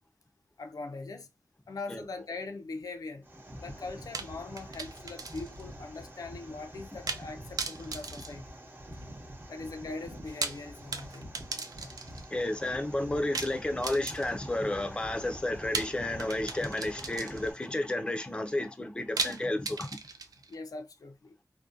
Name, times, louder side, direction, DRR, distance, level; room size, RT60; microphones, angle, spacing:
voice 1, 0.6-1.3 1.7-3.3 3.6-8.5 9.5-12.0 20.5-21.4, left 3 dB, 80° left, 0.4 m, -41 dB
sound 1, 3.2-17.5, equal, 30° right, 0.7 m, -46 dB
sound 2, 4.1-5.7 5.9-6.0 7.1-7.3 7.6-9.1 10.2-12.3 13.3-14.5 15.7-17.6 19.2-20.5, right 4 dB, 85° right, 0.4 m, -37 dB
voice 2, 12.3-19.9, left 1 dB, 15° left, 0.4 m, -32 dB
2.6 x 2.1 x 2.4 m
wide cardioid pair, 100°, 6 cm